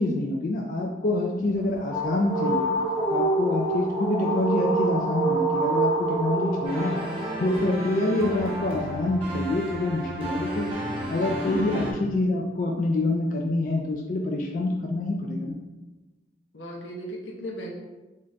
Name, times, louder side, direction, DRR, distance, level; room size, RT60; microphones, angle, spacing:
voice 1, 0.0-2.7 3.1-7.0 7.4-10.7 11.1-11.7 12.0-15.6, left 2 dB, 45° left, 0 dB, 0.3 m, -26 dB
sound 1, 1.5-7.6, right 2 dB, 10° left, 1.2 m, -26 dB
sound 2, 6.6-11.9, right 1 dB, 30° right, 0.8 m, -33 dB
voice 2, 11.5-11.9 16.5-17.7, equal, 85° left, -1 dB, 0.7 m, -35 dB
3.8 x 2.5 x 3.2 m, 1.1 s
head